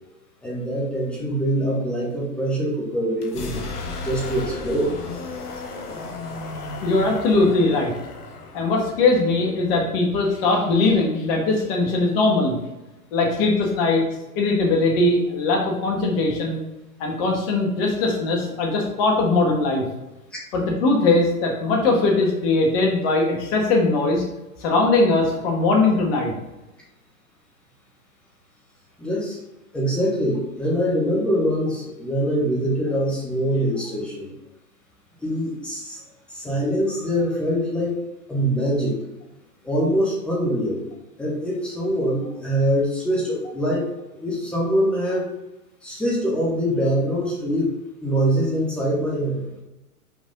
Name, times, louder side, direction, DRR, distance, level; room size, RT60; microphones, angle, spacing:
voice 1, 0.4-3.6 4.0-5.0 29.0-29.4 29.7-34.3 35.2-36.0 36.3-37.9 38.3-39.0 39.6-40.8 41.2-43.9 44.2-45.3 45.8-49.4, equal, ahead, -5 dB, 0.4 m, -23 dB
sound 1, 3.2-10.9, left 3 dB, 75° left, 1.3 m, -35 dB
voice 2, 6.8-7.9 8.5-12.6 13.1-14.0 14.4-16.6 17.0-19.9 20.5-24.2 24.6-26.3, left 3 dB, 40° left, 0 dB, 1.8 m, -20 dB
5.3 x 4.9 x 3.8 m, 0.98 s
hypercardioid pair, 125°, 46 cm